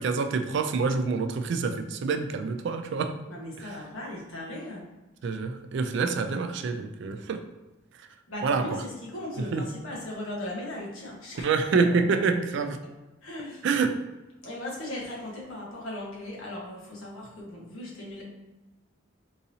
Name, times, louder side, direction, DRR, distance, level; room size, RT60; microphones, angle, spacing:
voice 1, 0.0-3.1 3.6-3.8 5.2-7.4 8.4-8.8 9.5-9.7 11.4-12.8 13.6-14.0, right 4 dB, 60° right, 7 dB, 0.3 m, -27 dB
voice 2, 3.3-4.8 8.3-11.5 11.9-12.2 13.2-13.7 14.4-18.2, left 1 dB, 80° left, -3 dB, 1.1 m, -38 dB
3.8 x 2.7 x 2.7 m, 1.1 s
head